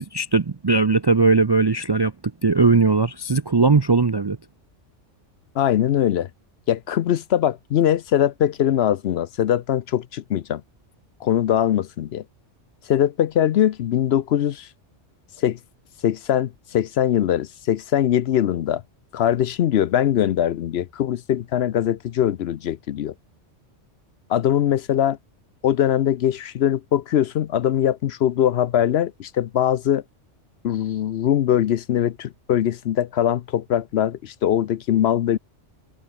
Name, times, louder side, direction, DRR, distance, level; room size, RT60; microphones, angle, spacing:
voice 1, 0.0-2.1 2.4-4.4, right 4 dB, 35° right, 0.4 m, -19 dB
voice 2, 5.6-6.3 6.7-10.6 11.2-12.2 12.9-14.7 15.4-15.6 16.0-18.8 19.1-23.1 24.3-25.2 25.6-30.0 30.6-35.4, left 10 dB, 65° left, 0.8 m, -21 dB
omnidirectional pair, 1.2 m